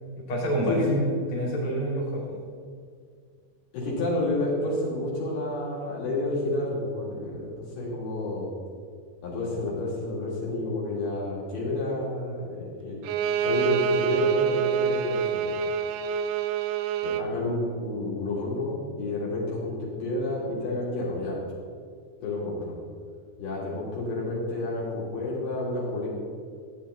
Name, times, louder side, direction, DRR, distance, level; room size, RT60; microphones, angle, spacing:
voice 1, 0.1-2.4, right 1 dB, 35° left, -5 dB, 3.3 m, -27 dB
voice 2, 3.7-8.5 9.2-13.0 13.4-15.5 17.0-21.4 22.2-22.7 23.4-26.1, left 2 dB, 65° left, -6 dB, 4.6 m, -30 dB
Bowed string instrument, 13.1-17.3, right 8 dB, 85° right, 2.4 m, -26 dB
15.0 x 9.0 x 4.2 m, 2.2 s
omnidirectional pair, 5.1 m